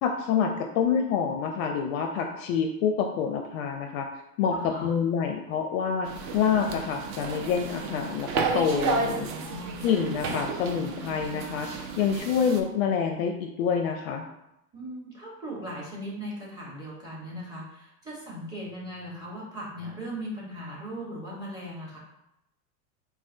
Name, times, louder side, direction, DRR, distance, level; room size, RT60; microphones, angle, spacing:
voice 1, 0.0-4.1 4.4-9.3 9.8-14.3, left 7 dB, 55° left, 4 dB, 0.5 m, -27 dB
voice 2, 4.5-4.9 9.2-9.8 14.7-22.0, equal, 10° right, -4 dB, 1.3 m, -38 dB
sound 1, 6.0-12.6, right 5 dB, 35° right, 0.4 m, -32 dB
4.2 x 2.2 x 2.6 m, 0.86 s
hypercardioid pair, 100°, 50 cm